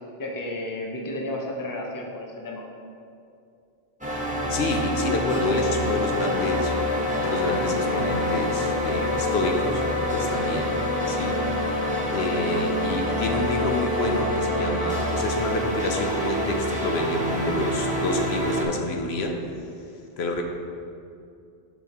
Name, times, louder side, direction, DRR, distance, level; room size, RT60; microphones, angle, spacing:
voice 1, 0.2-2.6, left 1 dB, 25° left, 0 dB, 0.6 m, -32 dB
sound 1, 4.0-18.6, left 1 dB, 10° right, 0.9 m, -26 dB
voice 2, 4.5-6.8 7.2-9.8 10.1-10.7 11.1-11.4 12.1-19.4 20.2-20.4, left 2 dB, 80° left, 3 dB, 0.9 m, -28 dB
10.0 x 4.1 x 2.9 m, 2.5 s
omnidirectional pair, 1.1 m